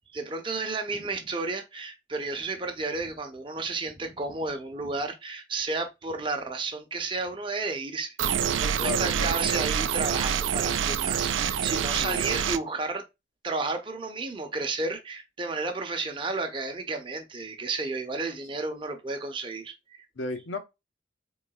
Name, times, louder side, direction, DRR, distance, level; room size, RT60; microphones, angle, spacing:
voice 1, 0.1-8.2 8.5-13.0 13.4-20.0, right 3 dB, 25° right, 0.7 m, -32 dB
sound 1, 8.2-12.6, right 8 dB, 85° right, 0.4 m, -26 dB
voice 2, 8.8-9.4 11.3-11.7 12.0-12.2 20.2-20.6, left 4 dB, 90° left, 0.9 m, -34 dB
3.8 x 3.6 x 2.3 m
head